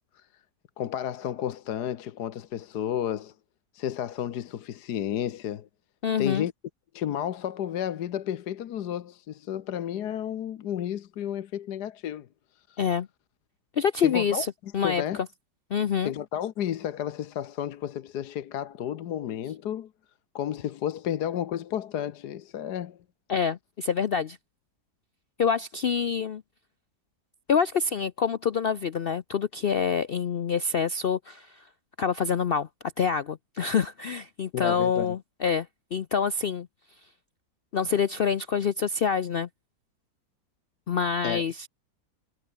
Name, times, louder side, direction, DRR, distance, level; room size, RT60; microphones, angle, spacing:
voice 1, 0.8-3.3 3.7-5.7 6.2-6.5 6.9-12.3 12.7-12.8 14.0-15.2 16.0-19.9 20.3-23.0 34.5-35.2 41.2-41.4, left 10 dB, 70° left, 1.5 m, -32 dB
voice 2, 6.0-6.5 12.8-13.1 13.8-15.0 15.7-16.1 23.3-24.4 25.4-26.4 27.5-31.6 32.0-32.7 33.0-36.7 37.7-39.5 40.9-41.7, left 6 dB, 85° left, 0.5 m, -26 dB
omnidirectional pair, 1.9 m